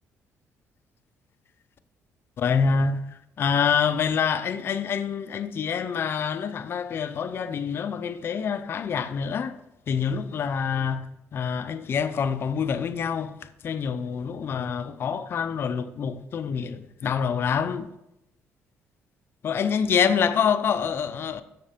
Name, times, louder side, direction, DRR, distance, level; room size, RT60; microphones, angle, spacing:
voice 1, 2.4-9.6 9.9-17.9 19.4-21.4, left 6 dB, 50° left, 0.5 m, -26 dB
7.3 x 5.8 x 5.1 m
cardioid pair, 95°, 5 cm